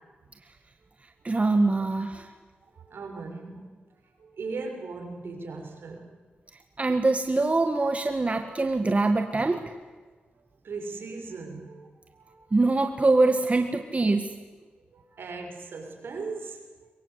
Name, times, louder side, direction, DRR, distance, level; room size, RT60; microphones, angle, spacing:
voice 1, 1.2-2.3 6.8-9.7 12.5-14.3, right 3 dB, 35° right, 6 dB, 1.9 m, -23 dB
voice 2, 2.9-3.7 4.2-6.1 10.6-11.9 15.2-16.6, right 4 dB, 75° right, 3 dB, 6.0 m, -37 dB
23.0 x 22.0 x 8.3 m, 1.4 s
cardioid pair, 50°, 4 cm